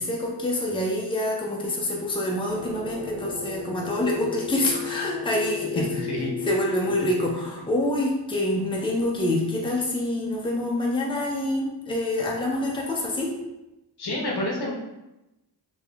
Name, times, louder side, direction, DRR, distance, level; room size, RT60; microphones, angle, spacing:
voice 1, 0.0-6.0 6.4-13.4, left 1 dB, 10° left, -3 dB, 0.7 m, -26 dB
sound 1, 2.5-7.3, left 7 dB, 30° right, 0.4 m, -34 dB
voice 2, 14.0-14.7, left 1 dB, 50° left, -1 dB, 0.9 m, -28 dB
3.1 x 3.0 x 2.3 m, 0.97 s
cardioid pair, 50°, 49 cm